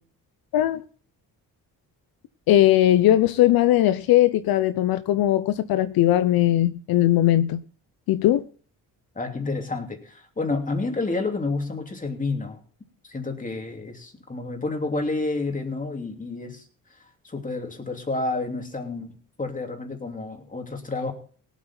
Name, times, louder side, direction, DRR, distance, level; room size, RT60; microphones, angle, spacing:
voice 1, 2.5-7.6 8.1-8.4, left 13 dB, 75° left, 0.8 m, -19 dB
voice 2, 9.1-12.6 13.0-16.7 17.2-21.1, left 3 dB, 20° left, 2.9 m, -29 dB
18.0 x 8.4 x 4.4 m
cardioid pair, 90°, 36 cm